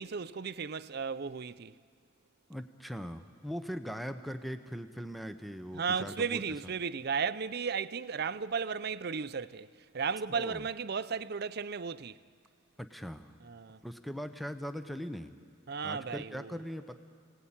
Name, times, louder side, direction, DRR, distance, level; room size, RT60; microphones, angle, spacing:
voice 1, 0.0-1.7 5.7-9.7 9.9-12.2 13.4-13.8 15.7-16.6, right 6 dB, 55° right, 0.6 m, -35 dB
voice 2, 2.5-6.4 10.3-10.7 12.8-13.4 13.8-15.3 15.8-17.0, equal, ahead, 0.8 m, -40 dB
29.0 x 18.5 x 8.8 m
head